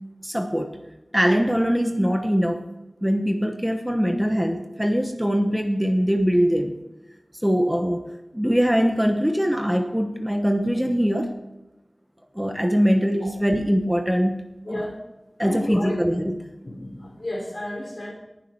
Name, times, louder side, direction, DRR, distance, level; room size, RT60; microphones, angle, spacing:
voice 1, 0.2-0.8 1.1-2.6 3.0-6.7 7.4-8.0 8.3-11.3 12.3-14.4 14.7-14.9 15.4-16.5, equal, 5° right, 5 dB, 1.1 m, -22 dB
voice 2, 14.6-15.0 15.4-16.0 16.6-18.1, left 1 dB, 55° left, 1 dB, 3.6 m, -32 dB
19.0 x 7.2 x 4.5 m, 0.99 s
wide cardioid pair, 60°, 0 cm